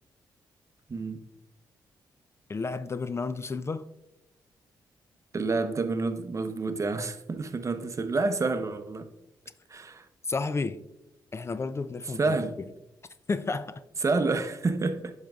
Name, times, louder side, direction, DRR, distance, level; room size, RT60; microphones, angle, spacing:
voice 1, 0.9-1.2 5.3-9.1 9.7-10.1 12.2-12.6 14.0-15.1, right 3 dB, 40° right, 0.8 m, -28 dB
voice 2, 2.5-3.8 10.2-10.8 11.3-12.3 13.3-13.8, left 4 dB, 30° left, 0.4 m, -31 dB
8.6 x 6.4 x 2.3 m
cardioid pair, 65°, 8 cm